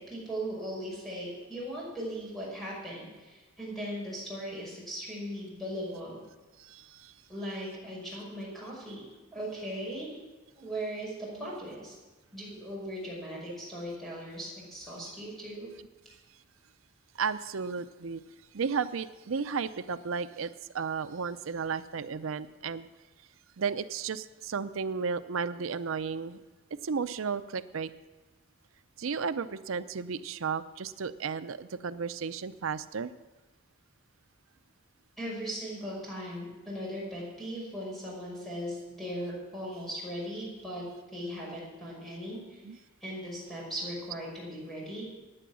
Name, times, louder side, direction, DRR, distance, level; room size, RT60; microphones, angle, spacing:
voice 1, 0.0-6.2 7.3-10.2 10.6-12.0 12.3-15.7 35.2-40.8 41.1-42.6 43.0-45.0, equal, ahead, -5 dB, 5.9 m, -38 dB
voice 2, 6.6-7.1 11.4-11.5 17.2-18.2 18.5-22.9 23.6-26.4 26.8-27.9 29.0-33.1 42.6-42.8, right 5 dB, 80° right, 13 dB, 0.6 m, -33 dB
15.5 x 10.0 x 6.2 m, 1.2 s
head